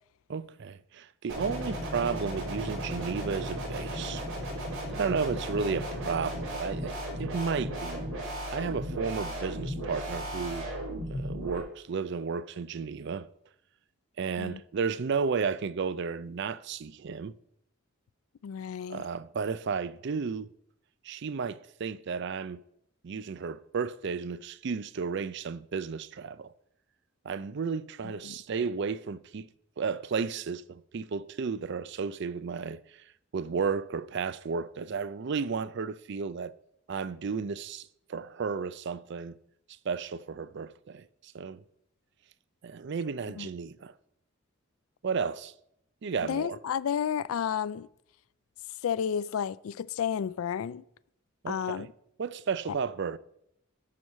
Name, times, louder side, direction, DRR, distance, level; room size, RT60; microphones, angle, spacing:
voice 1, 0.3-4.3 4.9-6.9 7.2-8.0 8.5-10.7 11.1-13.3 14.2-17.3 18.9-20.5 21.0-22.6 23.0-26.5 27.2-29.5 29.8-33.0 33.3-36.5 36.9-39.3 39.8-41.6 42.6-43.9 45.0-45.5 46.0-46.6 51.4-51.9 52.2-53.2, right 5 dB, 55° right, 0.4 m, -33 dB
sound 1, 1.3-11.6, equal, 90° right, 4.0 m, -35 dB
voice 2, 18.4-19.0 28.2-28.3 43.4-43.5 46.2-47.9 48.8-50.8 51.5-51.9, left 8 dB, 80° left, 0.3 m, -31 dB
12.0 x 4.7 x 7.4 m
head